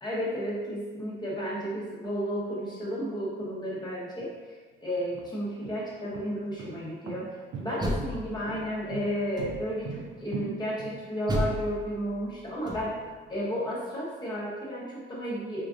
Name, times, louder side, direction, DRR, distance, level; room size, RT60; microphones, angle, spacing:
voice 1, 0.0-4.6 4.8-13.0 13.3-15.7, equal, 20° left, -6 dB, 0.9 m, -33 dB
sound 1, 4.2-4.3 5.0-11.5, right 5 dB, 85° right, 0.5 m, -40 dB
Door, 7.5-8.8 9.3-9.9 11.3-13.2, equal, 20° right, 0.6 m, -33 dB
4.6 x 2.4 x 2.5 m, 1.3 s
cardioid pair, 90°, 20 cm